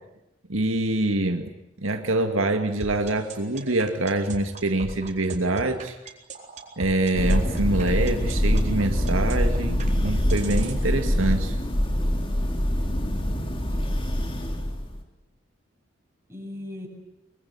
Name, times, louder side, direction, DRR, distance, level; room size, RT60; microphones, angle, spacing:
voice 1, 0.5-1.5 1.8-6.0 6.8-11.6, right 2 dB, 85° right, 5 dB, 2.0 m, -25 dB
sound 1, 2.8-10.8, right 2 dB, 40° right, 4.1 m, -37 dB
Thunder, 7.1-15.0, equal, 25° left, 3.0 m, -24 dB
voice 2, 12.8-13.1 13.4-14.1 16.3-16.9, left 1 dB, 15° right, 0 dB, 7.9 m, -40 dB
24.0 x 22.5 x 9.7 m, 0.92 s
head